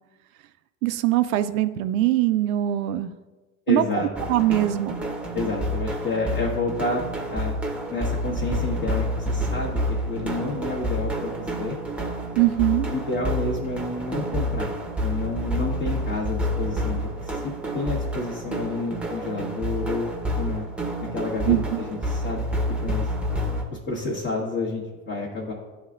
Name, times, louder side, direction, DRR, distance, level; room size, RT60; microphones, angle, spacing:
voice 1, 0.8-3.1 3.7-4.9 12.4-12.9 21.5-21.8, right 14 dB, 75° right, 12 dB, 0.5 m, -22 dB
voice 2, 3.7-4.1 5.3-7.6 7.9-9.8 10.0-11.7 12.9-14.7 15.0-20.6 21.1-21.6 21.9-22.5 22.8-23.1 23.9-25.5, left 3 dB, 25° left, -6 dB, 1.2 m, -29 dB
sound 1, 4.2-23.6, equal, 5° right, 0.9 m, -28 dB
10.5 x 3.5 x 2.5 m, 1.2 s
hypercardioid pair, 85°, 42 cm